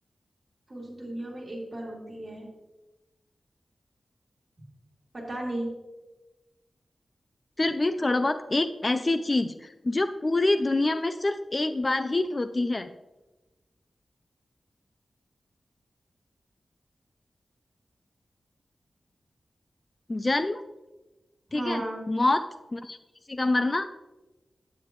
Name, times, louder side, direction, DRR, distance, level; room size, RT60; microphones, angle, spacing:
voice 1, 0.7-2.5 5.1-5.7 21.5-22.0, right 1 dB, 35° right, -3 dB, 2.7 m, -34 dB
voice 2, 7.6-12.9 20.1-20.6 21.5-21.8 22.1-22.4 22.7-23.0 23.3-23.9, left 2 dB, 30° left, 10 dB, 0.3 m, -26 dB
9.0 x 8.8 x 3.1 m, 1.1 s
wide cardioid pair, 120°, 0 cm